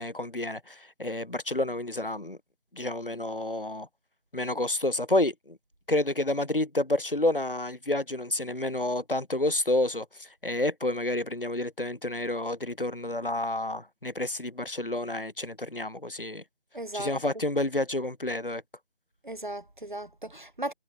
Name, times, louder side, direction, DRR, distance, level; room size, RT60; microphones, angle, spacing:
voice 1, 0.0-2.4 2.7-3.9 4.3-5.6 5.9-16.4 16.9-18.6, left 1 dB, 55° left, 2.3 m, -29 dB
voice 2, 16.7-17.2 19.2-20.7, right 1 dB, 45° right, 1.7 m, -36 dB
figure-of-eight pair, 175°, 33 cm